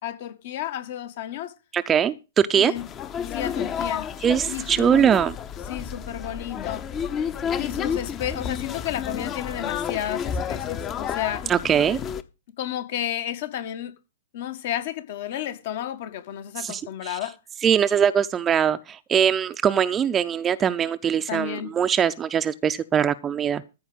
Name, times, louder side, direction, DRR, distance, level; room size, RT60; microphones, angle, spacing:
voice 1, 0.0-1.5 2.5-2.8 3.2-4.1 4.5-5.1 5.7-6.8 7.6-11.4 12.6-13.9 14.3-17.4 21.3-21.7, left 11 dB, 55° left, 1.6 m, -32 dB
voice 2, 1.7-2.7 4.2-5.3 11.5-12.0 16.6-17.2 17.6-23.6, right 8 dB, 20° right, 0.6 m, -22 dB
sound 1, 2.8-12.2, left 7 dB, 25° left, 0.9 m, -31 dB
14.0 x 4.9 x 7.8 m
figure-of-eight pair, 110°, 0 cm